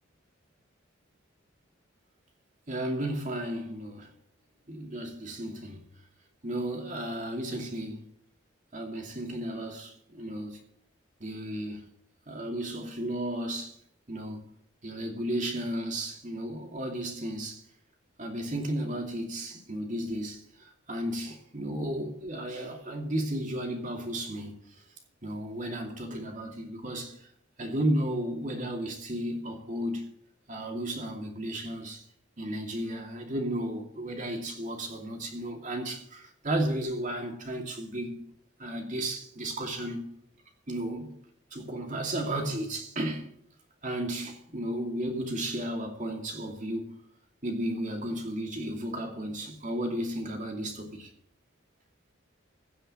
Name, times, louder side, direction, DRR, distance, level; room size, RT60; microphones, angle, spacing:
voice 1, 2.7-4.1 4.7-5.8 6.4-8.1 8.7-10.6 11.2-11.8 12.3-13.8 14.1-14.5 14.8-17.6 18.2-24.5 25.2-27.2 27.6-30.1 30.5-32.0 32.4-38.2 38.6-40.1 40.7-41.2 41.5-43.3 43.8-46.9 47.4-51.1, right 1 dB, 40° right, 2.6 m, -33 dB
16.0 x 5.6 x 8.9 m
head